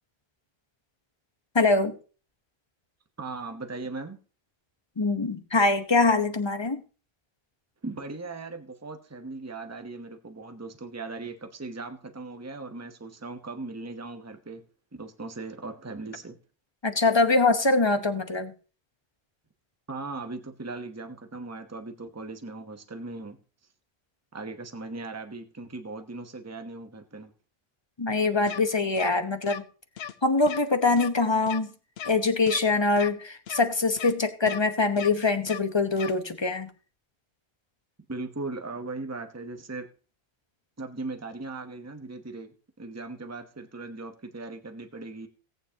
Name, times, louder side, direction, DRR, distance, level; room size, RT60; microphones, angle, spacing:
voice 1, 1.5-2.0 5.0-6.8 16.8-18.5 28.0-29.6 30.2-31.7 32.1-36.7, left 3 dB, 25° left, 7 dB, 1.0 m, -23 dB
voice 2, 3.2-4.2 7.8-14.6 15.0-16.4 19.9-23.4 24.3-27.3 38.1-39.9 40.8-45.3, right 3 dB, 15° right, 6 dB, 1.0 m, -38 dB
sound 1, 28.5-28.6 29.0-29.1 29.5-29.6 30.0-30.1 30.5-30.6 31.0-31.1 31.5-31.6 32.0-32.1 32.5-32.6 33.0-33.1 33.5-33.6 34.0-34.1 34.5-34.6 35.0-35.1 35.5-35.6 36.0-36.1, left 9 dB, 80° left, 1.0 m, -36 dB
17.5 x 9.0 x 2.9 m, 0.37 s
omnidirectional pair, 1.0 m